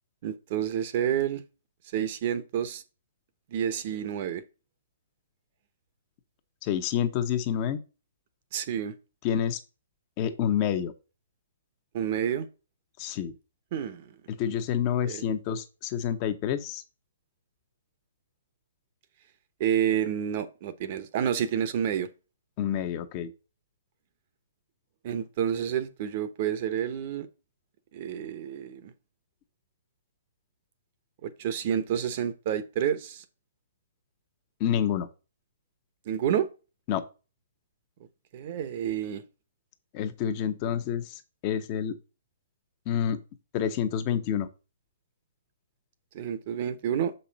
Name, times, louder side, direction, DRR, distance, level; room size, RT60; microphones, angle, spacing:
voice 1, 0.2-1.4 1.9-2.8 3.5-4.4 8.5-8.9 11.9-12.5 13.7-14.1 15.0-15.3 19.6-22.1 25.0-27.3 27.9-28.9 31.2-33.2 36.1-36.5 38.3-39.2 46.1-47.1, right 9 dB, 45° right, 1.0 m, -29 dB
voice 2, 6.6-7.8 9.2-9.6 10.2-10.9 13.0-13.3 14.3-16.8 22.6-23.3 34.6-35.1 36.9-37.0 39.9-42.0 42.9-43.2 43.5-44.5, left 9 dB, 35° left, 1.0 m, -28 dB
6.9 x 5.5 x 4.2 m
hypercardioid pair, 135°, 0 cm